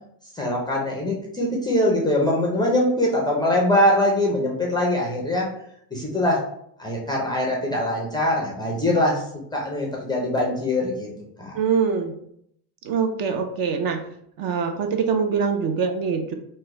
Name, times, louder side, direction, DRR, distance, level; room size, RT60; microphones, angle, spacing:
voice 1, 0.3-5.5 5.9-6.5 6.8-9.2 9.5-11.1 11.4-11.6, left 1 dB, 10° left, -1 dB, 0.3 m, -22 dB
voice 2, 11.5-12.2 12.8-14.1 14.4-16.3, right 6 dB, 50° right, 6 dB, 0.5 m, -24 dB
2.9 x 2.1 x 3.5 m, 0.70 s
supercardioid pair, 120°, 48 cm